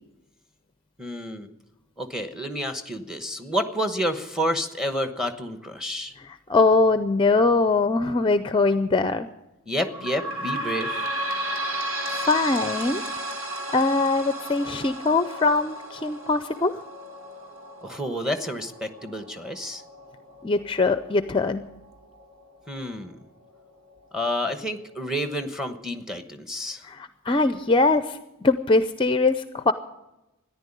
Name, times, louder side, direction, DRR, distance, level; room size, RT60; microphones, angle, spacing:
voice 1, 1.0-1.5 2.0-6.1 9.7-11.1 17.8-19.8 22.7-23.2 24.1-26.8, equal, 5° right, 8 dB, 1.1 m, -29 dB
voice 2, 6.2-9.3 12.1-13.0 13.7-16.8 20.4-21.7 26.8-29.7, left 3 dB, 25° left, 11 dB, 0.5 m, -22 dB
sound 1, 9.8-23.0 23.5-23.6 23.9-24.0 24.8-24.9, right 1 dB, 65° right, 2.0 m, -34 dB
14.0 x 10.5 x 9.9 m, 0.95 s
head